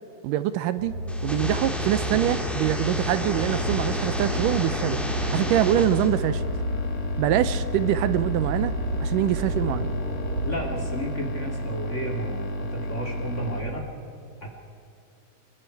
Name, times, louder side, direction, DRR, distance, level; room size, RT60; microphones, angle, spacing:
voice 1, 0.2-1.0 1.2-6.4 7.2-9.9, right 13 dB, 80° right, 13 dB, 2.2 m, -25 dB
sound 1, 0.8-10.5, left 1 dB, 45° right, 6.6 m, -32 dB
sound 2, 1.1-6.1, equal, ahead, 1.8 m, -31 dB
sound 3, 3.2-13.6, equal, 80° left, 4.1 m, -32 dB
voice 2, 10.4-13.9 14.4-14.5, right 1 dB, 25° left, 1 dB, 2.4 m, -32 dB
27.5 x 21.5 x 4.6 m, 2.6 s
omnidirectional pair, 3.9 m